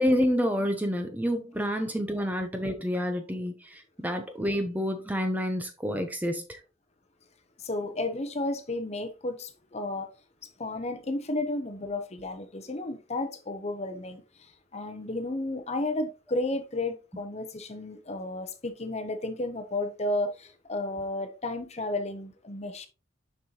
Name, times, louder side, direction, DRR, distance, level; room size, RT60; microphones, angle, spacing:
voice 1, 0.0-6.6, equal, 10° right, 0.6 m, -28 dB
voice 2, 7.6-10.1 10.4-14.2 14.7-22.9, left 2 dB, 30° left, 0.8 m, -32 dB
6.6 x 5.5 x 2.9 m
head